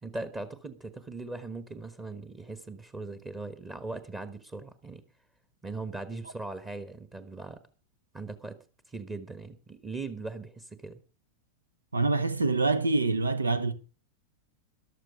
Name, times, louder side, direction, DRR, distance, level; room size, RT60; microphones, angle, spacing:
voice 1, 0.0-5.0 5.6-7.6 8.1-8.6 8.9-11.0, right 3 dB, 15° right, 1.3 m, -39 dB
voice 2, 11.9-13.7, right 3 dB, 75° right, 1.0 m, -25 dB
13.5 x 12.5 x 5.0 m
figure-of-eight pair, 90°, 0 cm